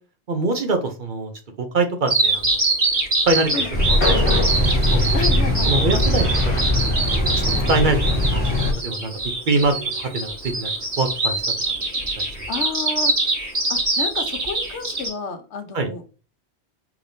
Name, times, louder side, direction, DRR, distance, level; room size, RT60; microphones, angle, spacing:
voice 1, 0.3-1.3 1.6-2.6 3.2-5.1 5.6-6.9 7.7-8.2 8.8-9.1 9.5-10.7 11.0-11.4 15.7-15.9, right 3 dB, 55° right, 5 dB, 0.8 m, -24 dB
Bird vocalization bird call bird song, 2.1-15.1, right 2 dB, 80° right, 2.4 m, -23 dB
Train, 3.4-8.7, left 3 dB, 35° left, 0.9 m, -32 dB
sound 1, 3.7-8.7, left 1 dB, 10° left, 1.4 m, -20 dB
voice 2, 5.1-5.9 12.5-13.1 13.7-16.0, left 5 dB, 90° left, 7 dB, 1.1 m, -30 dB
4.8 x 3.3 x 2.6 m, 0.36 s
omnidirectional pair, 1.1 m